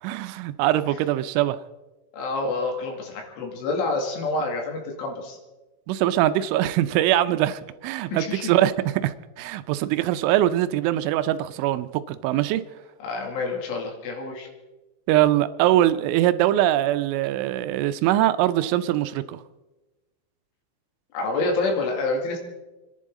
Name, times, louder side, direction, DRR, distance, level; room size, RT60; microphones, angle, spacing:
voice 1, 0.0-1.6 5.9-12.6 15.1-19.4, right 13 dB, 85° right, 3.1 m, -22 dB
voice 2, 2.1-5.4 8.1-8.5 13.0-14.5 21.1-22.4, left 3 dB, 80° left, 4.9 m, -27 dB
29.5 x 11.0 x 3.7 m
omnidirectional pair, 5.5 m